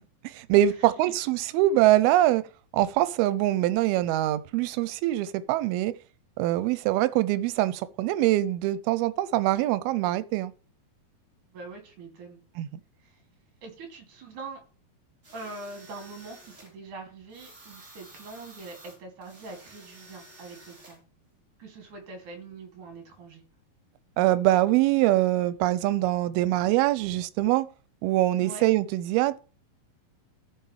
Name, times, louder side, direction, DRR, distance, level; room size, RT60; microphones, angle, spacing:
voice 1, 0.2-2.4 2.7-5.9 6.4-10.5 12.6-12.7 24.2-27.7 28.0-29.4, right 14 dB, 85° right, 2.6 m, -23 dB
voice 2, 0.8-1.1 11.5-12.4 13.0-13.2 13.6-14.6 15.3-21.0 21.6-23.4 28.4-28.7, right 3 dB, 60° right, 3.8 m, -43 dB
sound 1, 15.2-16.7 17.3-21.0, right 1 dB, 20° right, 2.9 m, -51 dB
14.0 x 6.0 x 3.2 m
omnidirectional pair, 4.3 m